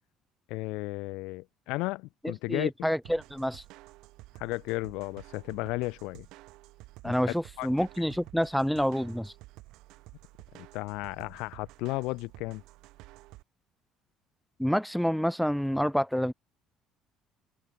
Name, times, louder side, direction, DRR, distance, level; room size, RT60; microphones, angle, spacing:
voice 1, 0.5-2.9 4.4-6.3 7.0-7.1 7.6-7.7 10.6-12.6, left 23 dB, 85° left, 1.1 m, -34 dB
voice 2, 2.2-3.6 7.0-9.3 14.6-16.3, equal, ahead, 0.4 m, -28 dB
sound 1, 3.0-13.4, right 19 dB, 70° right, 3.6 m, -52 dB
open air
cardioid pair, 170°, 0 cm